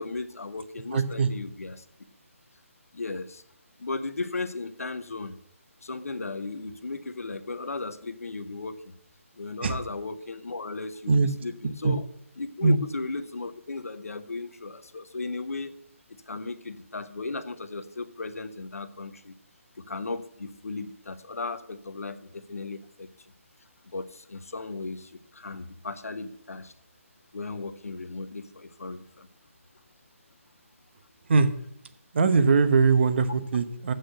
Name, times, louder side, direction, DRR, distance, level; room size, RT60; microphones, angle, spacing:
voice 1, 0.0-1.8 2.9-3.4 3.8-5.4 5.8-8.9 9.4-12.0 12.4-15.7 16.3-19.3 19.9-23.1 23.8-26.7 27.3-29.3, left 3 dB, 75° left, 12 dB, 0.8 m, -36 dB
voice 2, 0.9-1.3 9.6-9.8 11.1-11.3 11.8-12.0 12.6-12.8 31.3-31.5 32.1-33.9, right 4 dB, 50° right, 11 dB, 0.9 m, -21 dB
7.9 x 6.4 x 7.8 m, 0.71 s
figure-of-eight pair, 150°, 8 cm